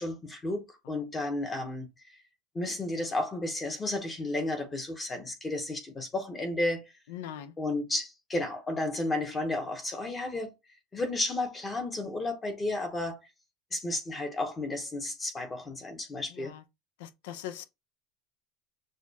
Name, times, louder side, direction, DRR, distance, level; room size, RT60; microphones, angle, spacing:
voice 1, 0.0-1.9 2.5-6.8 7.6-10.5 10.9-13.2 13.7-16.5, left 2 dB, 15° left, 0.8 m, -32 dB
voice 2, 7.1-7.5 16.4-16.6 17.0-17.6, left 11 dB, 85° left, 0.5 m, -40 dB
6.4 x 2.3 x 2.7 m
cardioid pair, 180°, 0 cm